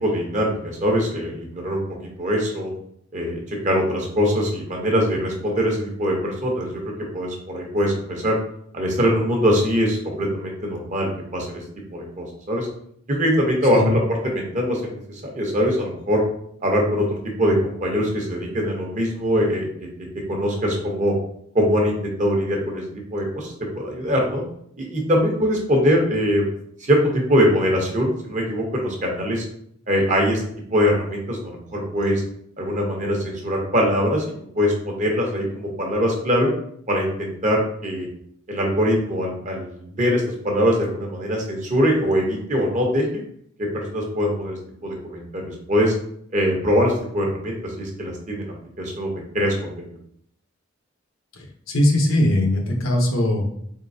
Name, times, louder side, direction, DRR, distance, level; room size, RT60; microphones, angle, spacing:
voice 1, 0.0-2.7 3.1-6.8 7.1-8.4 8.7-11.6 11.9-12.7 13.1-15.0 15.3-16.2 16.6-19.7 20.3-21.1 21.5-24.4 24.8-26.5 26.8-29.4 29.9-30.4 30.7-32.2 32.6-34.2 34.5-36.5 36.9-38.1 38.5-43.2 43.6-45.9 46.3-48.4 48.8-49.7, equal, 35° right, 0 dB, 0.9 m, -22 dB
voice 2, 51.3-53.5, left 1 dB, 75° left, 2 dB, 0.9 m, -20 dB
3.9 x 3.7 x 2.7 m, 0.68 s
head